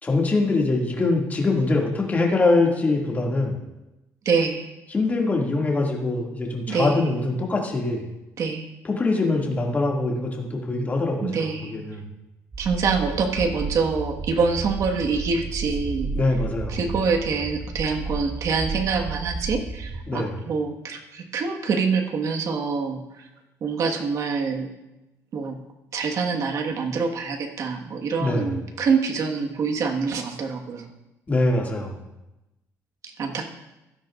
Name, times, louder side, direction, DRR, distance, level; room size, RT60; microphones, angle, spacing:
voice 1, 0.0-3.6 4.9-8.0 8.8-12.0 16.1-16.8 20.1-20.5 28.2-28.5 31.3-32.0, left 2 dB, 25° left, -1 dB, 2.4 m, -23 dB
voice 2, 4.2-4.7 6.7-7.0 8.4-8.7 11.2-11.7 12.6-16.1 16.7-23.0 23.6-24.7 25.3-25.6 25.9-30.8 33.0-33.5, right 5 dB, 55° right, 3 dB, 1.6 m, -25 dB
sound 1, 12.5-20.0, right 4 dB, 30° right, 1.0 m, -32 dB
16.5 x 12.0 x 2.6 m, 0.99 s
cardioid pair, 120°, 6 cm